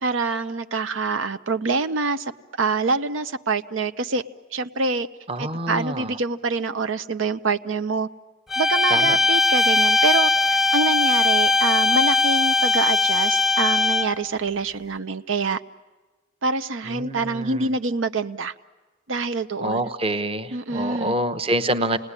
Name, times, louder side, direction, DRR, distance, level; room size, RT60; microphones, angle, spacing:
voice 1, 0.0-2.3 2.6-4.2 4.5-5.1 5.4-8.1 8.6-15.6 16.4-18.5 19.1-19.8 20.5-21.1, right 4 dB, 85° right, 9 dB, 0.8 m, -25 dB
voice 2, 5.3-6.1 8.9-9.2 16.9-17.7 19.6-22.0, right 1 dB, 30° right, 8 dB, 0.9 m, -26 dB
sound 1, 8.5-14.3, left 3 dB, ahead, 0.9 m, -19 dB
28.5 x 19.5 x 9.8 m, 1.3 s
head